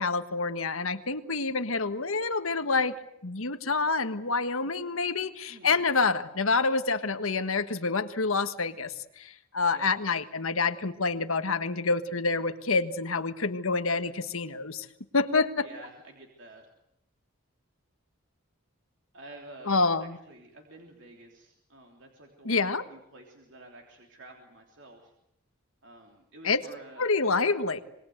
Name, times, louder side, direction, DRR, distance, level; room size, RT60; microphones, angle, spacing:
voice 1, 0.0-2.9 3.2-14.9 15.1-15.7 19.7-20.2 22.4-22.8 26.4-26.6 27.0-27.8, left 4 dB, 75° left, 11 dB, 1.5 m, -27 dB
voice 2, 5.5-5.8 9.7-10.0 15.6-16.7 19.1-25.1 25.8-27.2, right 2 dB, 60° right, 2 dB, 3.3 m, -50 dB
26.0 x 22.0 x 8.0 m, 0.80 s
head